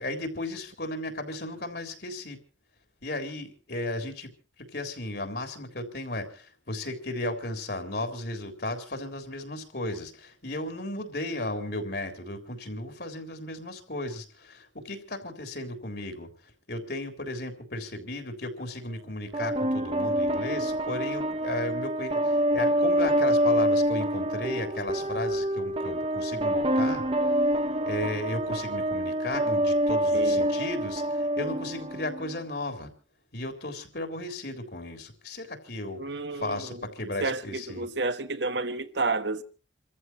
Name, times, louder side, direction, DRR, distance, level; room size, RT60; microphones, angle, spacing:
voice 1, 0.0-2.4 3.0-4.3 4.6-27.0 27.8-32.9 33.3-36.0 36.3-37.9, left 1 dB, 55° left, 3.6 m, -35 dB
sound 1, 19.3-32.4, right 1 dB, 30° right, 0.9 m, -26 dB
voice 2, 30.1-30.5 36.0-36.8 37.2-39.4, right 3 dB, 70° right, 1.4 m, -31 dB
29.0 x 14.5 x 2.9 m
head